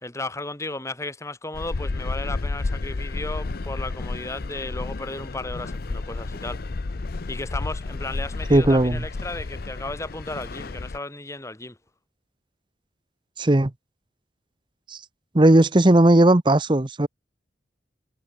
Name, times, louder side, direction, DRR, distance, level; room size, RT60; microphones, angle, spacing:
voice 1, 0.0-6.6 7.3-11.8, left 2 dB, 15° left, 1.5 m, -34 dB
sound 1, 1.5-11.0, left 3 dB, 50° left, 0.6 m, -31 dB
voice 2, 8.5-9.0 13.4-13.7 14.9-15.0 15.3-17.1, right 1 dB, 25° right, 0.8 m, -17 dB
head